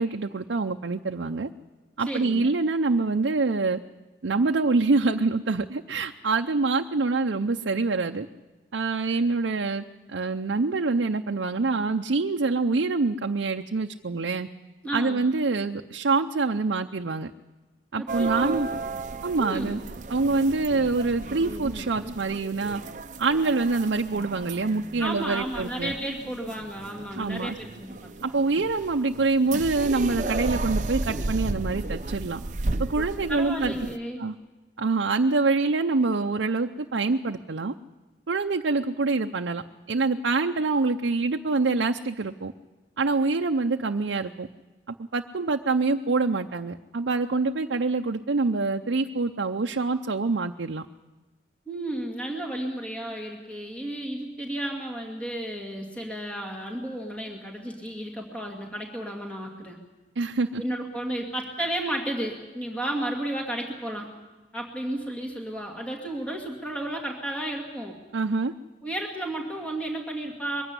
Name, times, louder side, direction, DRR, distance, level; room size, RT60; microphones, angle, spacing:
voice 1, 0.0-1.5 2.0-3.8 4.2-8.3 8.7-14.5 14.9-17.3 17.9-18.7 19.2-19.8 20.1-22.8 23.2-25.9 27.1-27.6 28.2-32.4 32.8-33.7 34.2-34.3 34.8-37.7 38.3-39.6 39.9-42.5 43.0-44.5 44.9-50.9 60.2-60.6 68.1-68.5, right 3 dB, 80° right, 4 dB, 0.6 m, -25 dB
voice 2, 2.1-2.5 14.8-15.2 18.0-18.7 19.3-19.8 25.0-28.1 33.3-34.2 51.7-59.8 60.6-64.1 64.5-68.0 68.8-70.6, right 1 dB, 5° left, 0 dB, 2.3 m, -33 dB
sound 1, 18.1-34.0, right 2 dB, 40° right, 0.7 m, -34 dB
22.5 x 16.0 x 9.8 m, 1.2 s
head